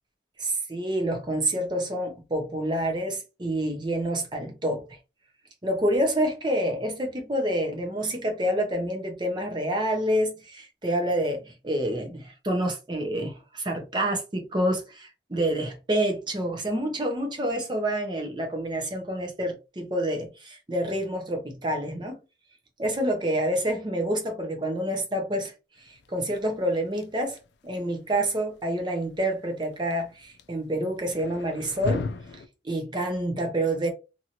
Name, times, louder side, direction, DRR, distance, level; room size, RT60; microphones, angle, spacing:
voice 1, 0.4-4.8 5.6-22.2 22.8-25.5 25.8-27.4 27.6-32.1 32.6-33.9, right 1 dB, 25° right, 0.7 m, -28 dB
sound 1, 25.8-32.5, left 3 dB, 75° left, 0.4 m, -38 dB
2.7 x 2.6 x 2.9 m
head